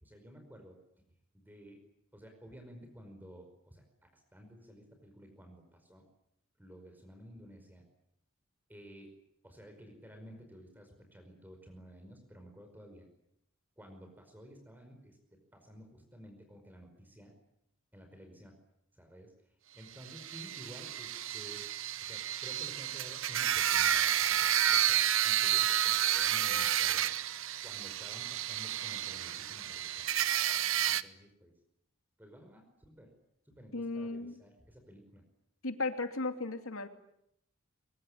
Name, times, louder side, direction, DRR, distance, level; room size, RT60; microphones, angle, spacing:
voice 1, 0.0-0.8 1.3-1.8 2.1-3.8 4.1-6.1 6.6-7.8 8.7-9.1 9.4-13.1 13.8-15.2 15.5-17.3 17.9-18.5 18.9-21.7 22.0-27.1 27.6-30.0 30.5-31.5 32.2-33.1 33.4-35.2, equal, 10° right, 4 dB, 5.1 m, -53 dB
sound 1, 20.1-31.0, right 11 dB, 65° right, 1.0 m, -30 dB
voice 2, 33.7-34.4 35.6-36.9, left 3 dB, 85° left, 7 dB, 2.7 m, -35 dB
24.0 x 23.0 x 10.0 m, 0.78 s
head